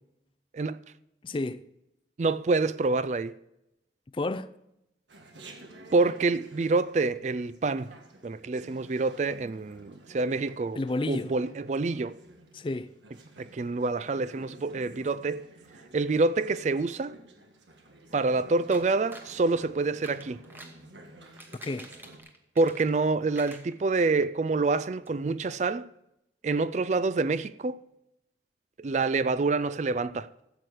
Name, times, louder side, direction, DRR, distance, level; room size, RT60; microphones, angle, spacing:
voice 1, 1.2-1.7 4.1-4.5 10.8-11.3 12.5-12.9 21.6-21.9, left 2 dB, 30° left, 0.4 m, -31 dB
voice 2, 2.2-3.3 5.9-7.9 8.2-10.8 11.1-12.1 13.4-15.4 15.9-17.2 18.1-20.4 22.6-25.9 26.4-27.8 28.8-30.3, right 3 dB, 40° right, 0.4 m, -27 dB
Chatter, 5.1-22.2, right 1 dB, 90° right, 1.6 m, -52 dB
sound 1, 18.7-19.3 19.9-20.8 21.2-23.1 23.3-24.3 24.6-24.7 25.0-25.1, right 1 dB, 10° right, 1.0 m, -48 dB
13.5 x 7.8 x 4.9 m
head